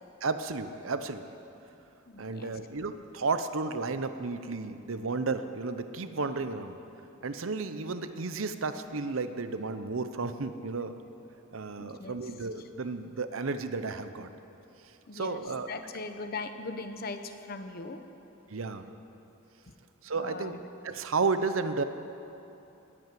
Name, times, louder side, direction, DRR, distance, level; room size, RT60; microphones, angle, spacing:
voice 1, 0.2-1.3 2.2-6.8 7.2-10.9 11.5-14.3 15.1-15.7 18.5-18.9 20.0-20.6 20.8-21.8, right 4 dB, 70° right, 10 dB, 0.8 m, -33 dB
voice 2, 2.1-2.6 11.8-12.2 15.1-18.0 20.1-20.6, left 3 dB, 45° left, 8 dB, 0.9 m, -40 dB
19.5 x 8.5 x 7.7 m, 2.9 s
head